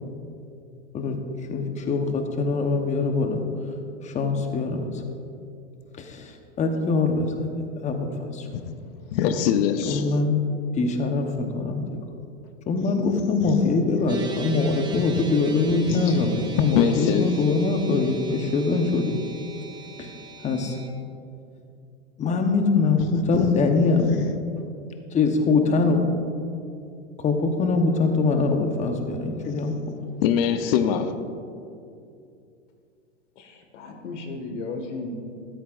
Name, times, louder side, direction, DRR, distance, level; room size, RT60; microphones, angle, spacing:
voice 1, 1.5-3.4 4.0-4.9 6.0-8.5 9.9-10.4 10.8-12.0 12.7-19.1 20.0-20.1 20.4-20.8 22.2-24.1 25.1-26.0 27.2-29.7, left 3 dB, 20° left, 1.0 m, -23 dB
voice 2, 9.1-10.1 14.9-15.3 15.7-16.2 16.6-17.5 23.3-23.5 24.0-24.3 30.2-31.1, left 8 dB, 50° left, 0.7 m, -24 dB
sound 1, 14.1-20.9, right 4 dB, 10° right, 0.8 m, -42 dB
voice 3, 33.4-35.1, left 3 dB, 70° left, 1.8 m, -35 dB
13.5 x 13.0 x 2.5 m
hypercardioid pair, 130°, 37 cm